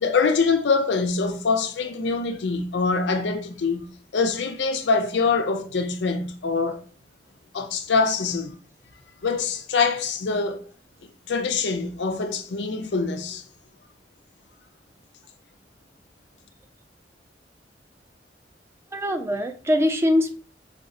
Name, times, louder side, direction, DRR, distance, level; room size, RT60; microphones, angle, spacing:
voice 1, 0.0-3.9 4.1-6.8 7.5-8.5 9.2-10.6 11.3-13.4, left 4 dB, 80° left, 0.5 m, -24 dB
voice 2, 18.9-20.3, left 1 dB, 15° right, 0.4 m, -22 dB
4.9 x 2.0 x 2.6 m
head